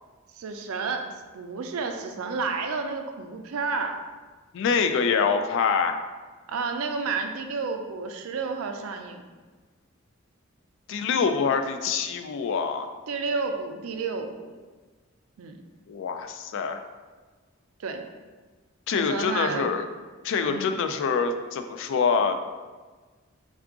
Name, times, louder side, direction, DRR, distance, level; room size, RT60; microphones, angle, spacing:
voice 1, 0.4-4.0 6.5-9.2 13.1-14.5 15.4-15.6 17.8-18.0 18.9-19.7 20.5-20.7, right 4 dB, 80° right, 5 dB, 0.4 m, -31 dB
voice 2, 4.5-6.0 10.9-12.9 15.9-16.8 18.9-19.8 20.2-22.4, left 5 dB, 65° left, 7 dB, 0.3 m, -25 dB
3.7 x 2.4 x 3.5 m, 1.4 s
head